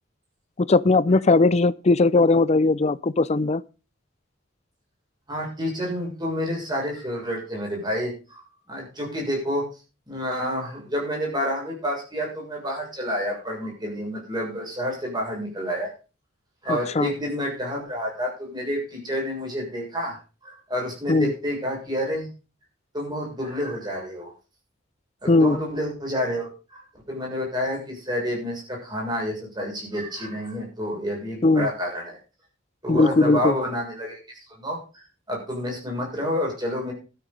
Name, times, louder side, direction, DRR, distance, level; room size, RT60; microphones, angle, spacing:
voice 1, 0.6-3.6 16.7-17.1 21.1-21.3 25.3-25.6 31.4-31.7 32.9-33.5, left 3 dB, 35° left, 0.5 m, -19 dB
voice 2, 5.3-9.6 10.1-15.9 16.6-20.2 20.4-22.3 22.9-24.3 25.2-26.8 27.1-32.2 32.8-36.9, equal, 20° right, 6.9 m, -29 dB
13.0 x 9.0 x 5.4 m
head